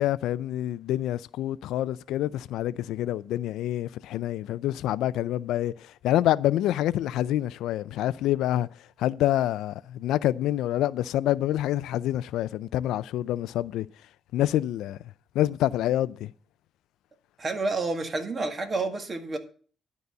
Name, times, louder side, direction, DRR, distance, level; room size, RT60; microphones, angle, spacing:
voice 1, 0.0-5.7 6.0-8.7 9.0-13.9 14.3-15.0 15.4-16.3, left 13 dB, 90° left, 0.3 m, -27 dB
voice 2, 17.4-19.4, right 3 dB, 35° right, 1.8 m, -29 dB
11.5 x 4.1 x 7.9 m
cardioid pair, 90°, 0 cm